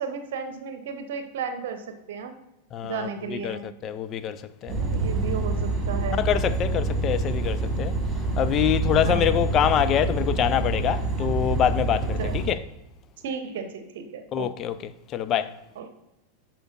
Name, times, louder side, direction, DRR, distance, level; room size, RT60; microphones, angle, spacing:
voice 1, 0.0-2.4 2.8-3.7 4.7-6.3 8.8-9.3 12.2-12.4 13.2-14.5 15.8-15.9, right 5 dB, 55° right, 0.8 m, -34 dB
voice 2, 2.7-4.8 6.2-8.0 8.4-12.6 14.3-14.7 15.1-15.5, left 10 dB, 30° left, 0.4 m, -25 dB
sound 1, 4.7-12.5, right 2 dB, 20° right, 1.9 m, -26 dB
11.5 x 4.5 x 2.4 m
figure-of-eight pair, 90°, 0 cm